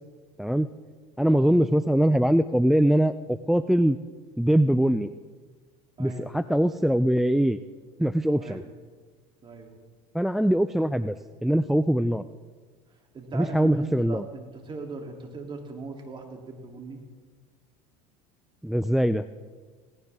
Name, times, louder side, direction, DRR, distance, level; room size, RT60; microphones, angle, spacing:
voice 1, 1.2-4.0 4.4-5.1 6.0-7.6 8.0-8.6 10.1-11.2 11.4-12.2 13.3-14.2 18.6-19.2, right 1 dB, ahead, 13 dB, 0.3 m, -22 dB
voice 2, 6.0-6.3 8.3-8.6 9.4-9.7 13.1-17.0, right 3 dB, 30° right, 2 dB, 3.0 m, -39 dB
17.5 x 16.0 x 3.6 m, 1.5 s
supercardioid pair, 95°, 16 cm